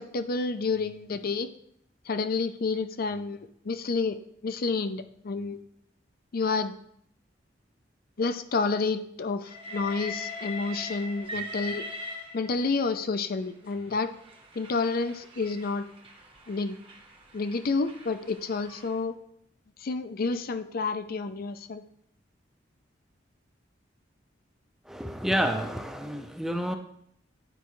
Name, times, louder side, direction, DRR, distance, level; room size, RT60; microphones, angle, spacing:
voice 1, 0.0-1.5 2.1-4.2 4.4-5.6 6.3-6.7 8.2-11.8 12.3-14.1 14.6-15.9 16.5-16.8 17.3-19.1 19.8-21.8, left 4 dB, 55° left, 11 dB, 0.5 m, -29 dB
Train, 9.5-12.9 13.7-19.0, left 2 dB, 30° right, 1.0 m, -41 dB
voice 2, 24.9-26.8, equal, ahead, 5 dB, 0.5 m, -29 dB
9.9 x 4.6 x 3.1 m, 0.70 s
head